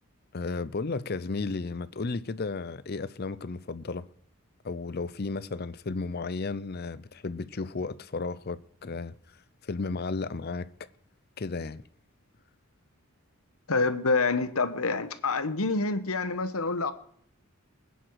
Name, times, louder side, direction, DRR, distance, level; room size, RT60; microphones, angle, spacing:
voice 1, 0.3-4.1 4.6-9.1 9.6-10.7 11.4-11.8, left 3 dB, 45° left, 0.6 m, -33 dB
voice 2, 13.7-16.9, left 3 dB, 75° left, 1.2 m, -27 dB
21.0 x 10.0 x 4.7 m
head